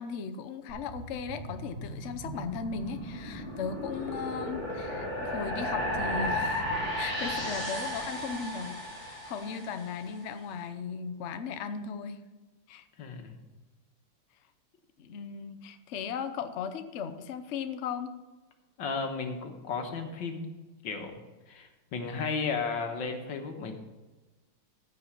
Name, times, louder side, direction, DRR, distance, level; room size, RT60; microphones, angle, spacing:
voice 1, 0.0-6.7 7.0-8.8 9.0-12.2 12.7-12.8 15.0-18.1, left 6 dB, 80° left, 8 dB, 0.6 m, -37 dB
sound 1, 0.7-10.1, left 1 dB, 5° right, 3.9 m, -35 dB
voice 2, 13.0-13.3 18.8-20.5 20.8-23.7, left 4 dB, 65° left, 5 dB, 1.9 m, -34 dB
14.5 x 5.6 x 5.8 m, 1.2 s
omnidirectional pair, 2.3 m